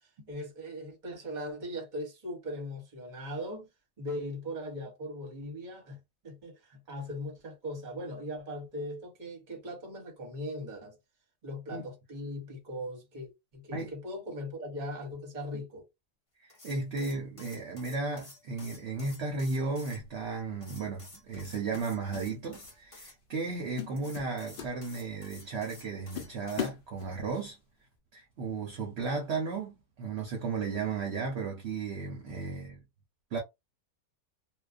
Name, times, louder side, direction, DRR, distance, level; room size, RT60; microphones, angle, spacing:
voice 1, 0.2-3.7 4.0-11.0 11.4-15.8, equal, 40° right, 0.9 m, -39 dB
voice 2, 16.4-27.6 28.1-32.8 33.3-33.4, right 4 dB, 60° right, 0.8 m, -34 dB
sound 1, 16.5-20.0 20.6-23.1 23.9-26.7, left 2 dB, 25° left, 0.8 m, -51 dB
sound 2, 20.0-20.2 21.3-22.3 22.5-22.8 23.3-23.5 23.8-25.3 25.7-25.8 26.1-27.5, left 9 dB, 70° left, 0.5 m, -40 dB
2.4 x 2.3 x 2.4 m
omnidirectional pair, 1.5 m